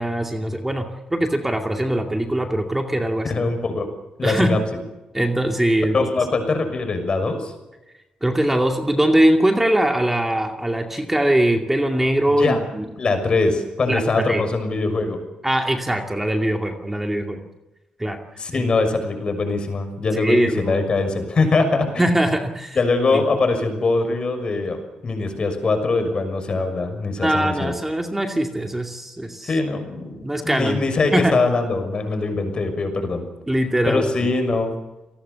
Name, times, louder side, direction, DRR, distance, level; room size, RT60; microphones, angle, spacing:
voice 1, 0.0-3.3 4.2-4.5 5.1-6.1 8.2-12.8 13.9-14.4 15.4-17.4 18.0-18.2 18.5-18.6 20.2-20.9 22.0-22.8 23.1-23.2 27.2-29.5 30.2-30.8 31.1-31.4 33.5-34.3, right 1 dB, 10° right, 4 dB, 2.4 m, -21 dB
voice 2, 3.2-3.9 4.2-4.8 5.9-7.5 12.3-12.6 13.0-15.2 18.4-22.0 22.7-24.8 25.0-27.7 29.4-33.3 33.8-34.7, left 3 dB, 40° left, 7 dB, 6.3 m, -22 dB
29.0 x 19.0 x 7.1 m, 1.0 s
cardioid pair, 120°, 2 cm